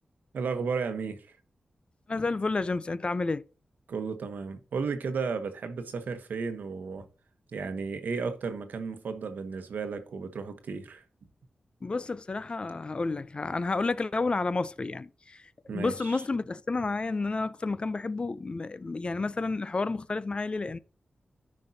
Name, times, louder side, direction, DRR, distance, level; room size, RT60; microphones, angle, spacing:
voice 1, 0.3-1.4 3.9-7.1 7.5-11.0 15.7-16.2, right 5 dB, 90° right, 1.0 m, -34 dB
voice 2, 2.1-3.4 11.8-15.4 15.7-20.8, left 3 dB, 35° left, 0.4 m, -30 dB
13.5 x 5.2 x 2.7 m
wide cardioid pair, 100°, 3 cm